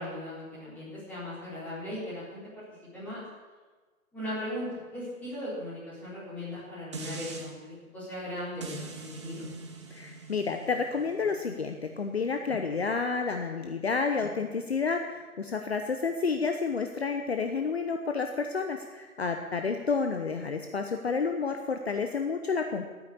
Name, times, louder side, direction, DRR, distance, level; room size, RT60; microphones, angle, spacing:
voice 1, 0.0-2.4 2.9-3.2 4.1-9.5 14.2-14.3, left 1 dB, 5° left, -11 dB, 4.2 m, -38 dB
sound 1, 6.9-7.5 8.6-13.8 14.2-14.3, right 3 dB, 20° right, 1.1 m, -44 dB
voice 2, 9.9-22.9, left 5 dB, 45° left, 5 dB, 1.0 m, -30 dB
12.5 x 9.3 x 8.5 m, 1.4 s
hypercardioid pair, 165°, 43 cm